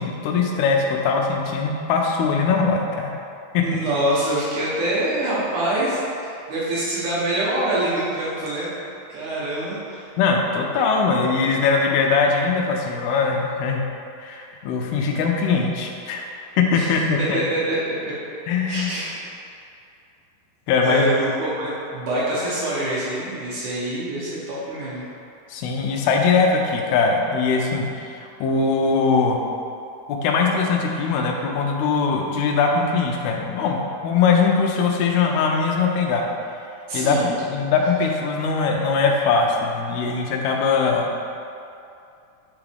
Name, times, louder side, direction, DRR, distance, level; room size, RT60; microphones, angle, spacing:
voice 1, 0.0-3.1 3.5-3.6 10.2-13.8 14.2-16.2 16.6-17.4 18.5-18.9 20.7-21.1 25.5-27.9 28.4-29.4 30.1-36.3 36.9-41.1, left 4 dB, 85° left, 1 dB, 2.5 m, -21 dB
voice 2, 3.6-8.7 9.1-10.1 16.7-16.9 17.3-18.1 18.7-19.2 20.8-25.0 36.9-37.4, right 1 dB, 65° right, -8 dB, 2.2 m, -25 dB
8.1 x 3.6 x 3.4 m, 2.5 s
omnidirectional pair, 4.3 m